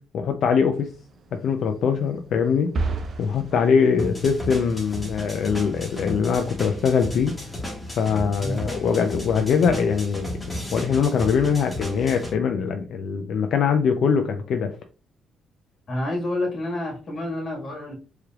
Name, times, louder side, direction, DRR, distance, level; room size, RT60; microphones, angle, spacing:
voice 1, 0.1-0.9 1.3-2.7 3.2-7.3 8.0-10.3 10.7-14.7, left 6 dB, 70° left, 6 dB, 0.4 m, -22 dB
sound 1, 0.8-6.7, right 3 dB, 55° right, 0.9 m, -36 dB
sound 2, 4.0-12.3, left 1 dB, 15° left, 1.8 m, -34 dB
voice 2, 15.9-17.9, left 1 dB, 45° left, -1 dB, 1.6 m, -28 dB
4.7 x 3.2 x 2.3 m, 0.35 s
cardioid pair, 90°, 0 cm